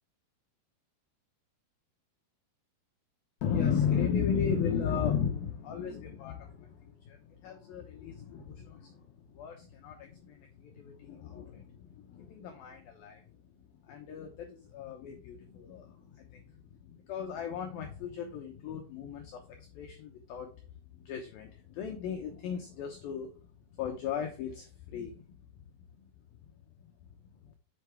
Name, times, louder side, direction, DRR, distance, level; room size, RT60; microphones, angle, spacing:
voice 1, 3.4-9.0 9.3-13.2 13.9-16.4 16.8-20.5 21.0-23.3 23.8-25.2, left 7 dB, 80° left, 4 dB, 2.1 m, -35 dB
8.1 x 7.0 x 3.5 m, 0.36 s
omnidirectional pair, 5.5 m